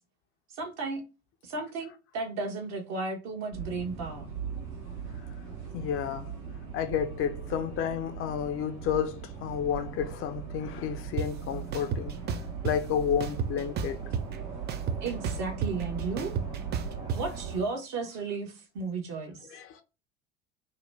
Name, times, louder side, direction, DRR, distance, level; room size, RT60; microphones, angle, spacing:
voice 1, 0.5-1.0 1.4-4.3 15.0-16.3 17.1-19.5, right 3 dB, 55° right, 1.0 m, -34 dB
sound 1, 3.5-17.6, right 7 dB, 75° right, 1.3 m, -39 dB
voice 2, 5.7-6.3 6.7-12.2 12.6-14.0 19.4-19.8, left 8 dB, 40° left, 0.5 m, -31 dB
sound 2, 11.2-11.3 11.7-12.7 13.2-14.4 14.7-17.2, right 6 dB, 30° right, 0.4 m, -31 dB
2.9 x 2.1 x 3.3 m
figure-of-eight pair, 65°, 34 cm